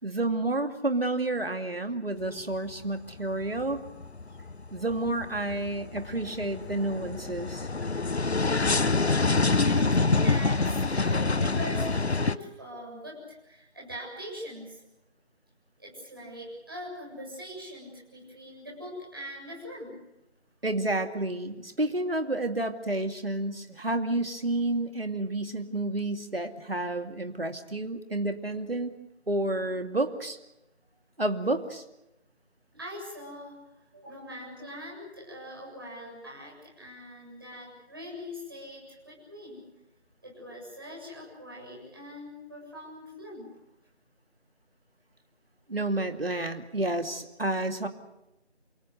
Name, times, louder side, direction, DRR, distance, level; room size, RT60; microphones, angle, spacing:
voice 1, 0.0-3.8 4.7-7.7 20.6-28.9 29.3-30.4 31.2-31.8 45.7-47.9, right 2 dB, 60° right, 6 dB, 2.5 m, -30 dB
sound 1, 2.2-2.8 3.2-12.4, left 3 dB, 70° left, 1.0 m, -26 dB
voice 2, 9.6-14.8 15.8-20.0 32.7-33.7 33.9-39.7 40.2-43.5, equal, 20° right, -4 dB, 7.6 m, -42 dB
29.0 x 18.0 x 8.2 m, 0.93 s
figure-of-eight pair, 175°, 33 cm